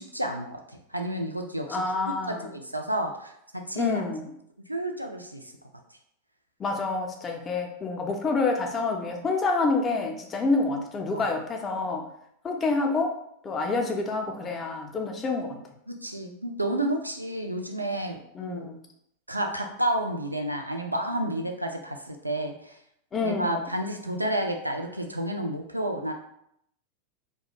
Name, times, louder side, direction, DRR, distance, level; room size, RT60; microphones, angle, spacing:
voice 1, 0.0-1.8 2.3-4.0 4.7-5.5 11.1-11.2 15.9-18.7 19.3-22.8 23.2-26.1, right 1 dB, 85° right, 4 dB, 0.3 m, -31 dB
voice 2, 1.7-2.5 3.8-4.3 6.6-12.1 12.4-13.1 13.4-15.6 18.3-18.9 23.1-23.7, left 3 dB, 20° left, 3 dB, 0.4 m, -28 dB
2.4 x 2.1 x 2.8 m, 0.74 s
figure-of-eight pair, 90°, 0 cm